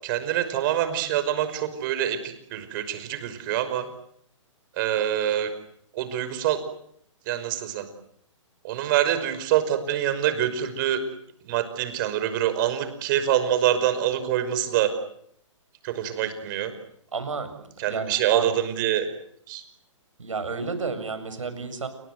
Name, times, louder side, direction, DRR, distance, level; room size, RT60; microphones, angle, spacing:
voice 1, 0.0-3.9 4.8-5.5 5.9-6.6 7.3-7.9 8.6-11.0 11.4-14.9 15.8-16.7 17.8-19.1 19.5-19.6, right 11 dB, 40° right, 11 dB, 5.6 m, -25 dB
voice 2, 17.1-17.5 17.8-18.5 20.2-21.9, right 4 dB, 75° right, 9 dB, 7.5 m, -31 dB
29.0 x 24.5 x 8.1 m, 0.71 s
figure-of-eight pair, 130°, 17 cm